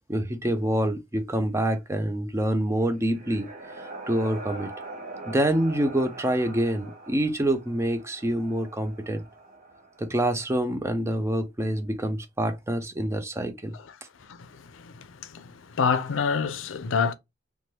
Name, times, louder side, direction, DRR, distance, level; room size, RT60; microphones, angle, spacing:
voice 1, 0.1-3.5 3.8-4.7 5.3-9.2 10.0-13.7, right 1 dB, 15° right, 0.4 m, -26 dB
sound 1, 2.6-10.5, right 2 dB, 40° right, 0.7 m, -43 dB
voice 2, 14.3-17.1, left 5 dB, 85° left, 0.5 m, -28 dB
3.2 x 2.2 x 2.7 m
head